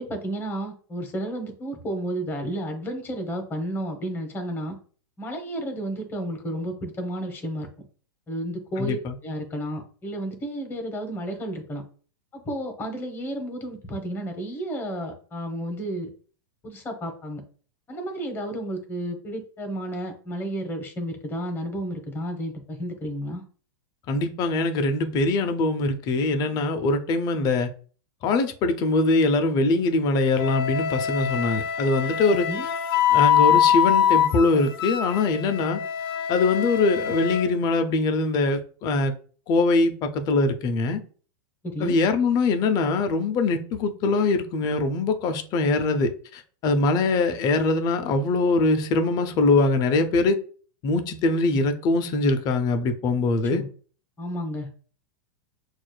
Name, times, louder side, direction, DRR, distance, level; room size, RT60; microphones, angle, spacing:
voice 1, 0.0-4.8 5.2-7.7 8.3-9.0 9.2-11.8 12.3-16.1 16.6-17.4 17.9-23.4 32.5-32.7 41.6-42.0 53.5-53.7 54.2-54.7, right 1 dB, 20° left, 4 dB, 0.9 m, -32 dB
voice 2, 8.8-9.1 24.1-27.7 28.2-32.5 33.1-35.8 36.3-39.1 39.5-41.0 41.8-50.4 50.8-53.6, left 3 dB, 35° left, 8 dB, 0.5 m, -22 dB
Wind instrument woodwind instrument, 30.4-37.5, left 9 dB, 75° left, 0.6 m, -23 dB
6.0 x 2.4 x 2.2 m, 0.42 s
supercardioid pair, 140°, 12 cm